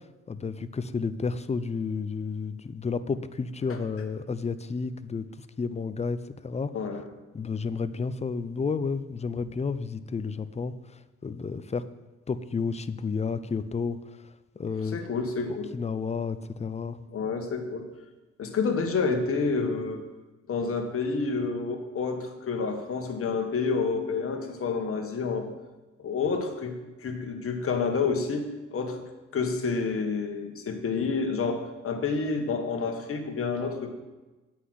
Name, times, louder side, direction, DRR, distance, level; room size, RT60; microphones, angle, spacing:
voice 1, 0.3-5.3 5.6-6.2 6.4-6.7 7.3-10.7 11.2-11.8 12.3-14.0 14.6-15.0 15.5-17.0, left 5 dB, 20° left, 13 dB, 0.5 m, -31 dB
voice 2, 6.7-7.0 14.8-15.7 17.1-17.9 18.4-20.0 20.5-25.5 26.0-29.0 29.3-34.0, left 4 dB, 45° left, 4 dB, 1.5 m, -29 dB
8.3 x 5.9 x 7.7 m, 1.2 s
cardioid pair, 90°, 30 cm